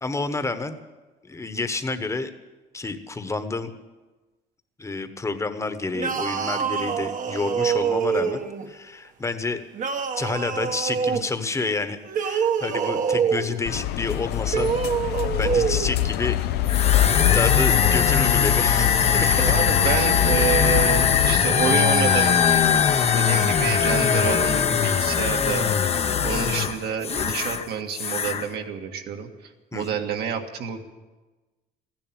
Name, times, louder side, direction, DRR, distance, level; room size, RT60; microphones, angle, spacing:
voice 1, 0.0-0.8 1.2-2.3 2.7-3.7 4.8-8.4 8.7-9.6 10.1-14.7 15.4-16.4 17.3-19.4 29.7-30.0, left 3 dB, 15° left, 9 dB, 1.2 m, -29 dB
sound 1, 5.9-8.7 9.7-11.3 12.0-13.6 14.4-15.9, right 7 dB, 50° right, 1.2 m, -25 dB
sound 2, 13.7-21.4, left 13 dB, 75° left, 0.5 m, -24 dB
sound 3, 16.7-27.7 27.9-28.4, left 7 dB, 40° left, 0.8 m, -21 dB
voice 2, 19.3-22.4 23.1-25.7 26.2-29.3 29.7-30.8, right 7 dB, 70° right, 4 dB, 1.8 m, -28 dB
15.0 x 10.5 x 9.1 m, 1.2 s
cardioid pair, 110°, 17 cm